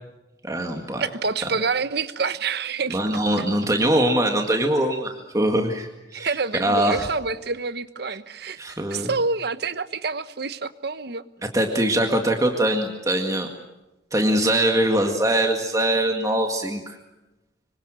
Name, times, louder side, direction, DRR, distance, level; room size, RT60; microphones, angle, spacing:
voice 1, 0.4-1.1 2.9-7.1 8.6-9.1 11.5-13.5 14.1-16.9, right 1 dB, 15° right, 2.0 m, -22 dB
voice 2, 1.0-3.0 3.4-3.5 6.1-11.2, right 4 dB, 60° right, 1.1 m, -27 dB
25.5 x 24.5 x 7.7 m
head